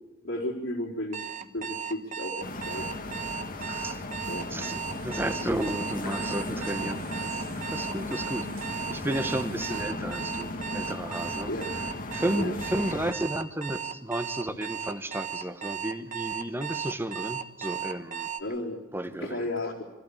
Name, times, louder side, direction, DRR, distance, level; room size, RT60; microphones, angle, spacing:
voice 1, 0.2-2.8 4.3-4.5 11.5-11.7 12.3-12.5 18.4-18.8 19.2-19.8, left 1 dB, 70° left, 3.9 m, -33 dB
Alarm, 1.1-18.4, right 8 dB, 40° right, 1.1 m, -36 dB
sound 1, 2.4-13.1, left 2 dB, 45° left, 1.5 m, -36 dB
voice 2, 3.6-4.0 4.5-7.1 7.7-11.5 12.1-18.3 18.9-19.5, right 1 dB, 10° right, 1.2 m, -33 dB
sound 2, 4.7-9.8, right 6 dB, 85° right, 3.1 m, -50 dB
25.0 x 14.5 x 8.5 m
head